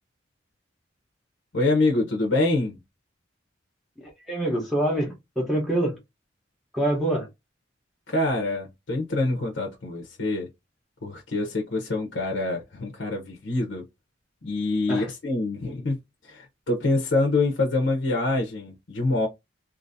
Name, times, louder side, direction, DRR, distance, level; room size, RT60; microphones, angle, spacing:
voice 1, 1.5-2.8 8.1-10.5 11.0-13.8 14.4-16.0 16.3-19.3, left 2 dB, 80° left, 0.8 m, -25 dB
voice 2, 4.3-6.0 6.7-7.3 14.9-15.1, right 1 dB, ahead, 0.9 m, -25 dB
2.6 x 2.6 x 2.6 m
head